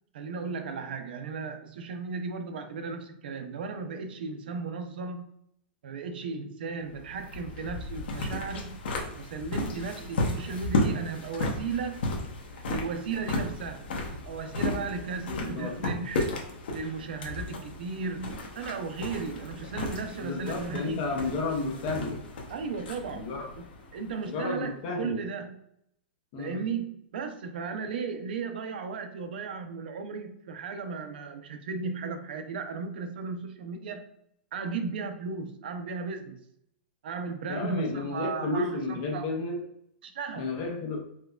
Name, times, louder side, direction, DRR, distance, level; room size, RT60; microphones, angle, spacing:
voice 1, 0.1-5.3 5.8-8.8 9.2-12.0 12.7-16.3 16.7-21.0 22.5-23.3 23.6-23.7 23.9-25.6 26.4-34.0 34.5-36.4 37.0-39.3 40.0-40.5, right 5 dB, 60° right, 6 dB, 0.5 m, -35 dB
sound 1, 6.8-24.5, left 2 dB, 65° left, 0.8 m, -34 dB
voice 2, 15.3-15.7 20.2-22.2 23.1-23.5 24.2-25.2 26.3-26.6 37.5-39.6 40.3-41.0, left 3 dB, 30° left, 1 dB, 0.6 m, -32 dB
4.3 x 2.2 x 2.3 m, 0.73 s
supercardioid pair, 175°, 6 cm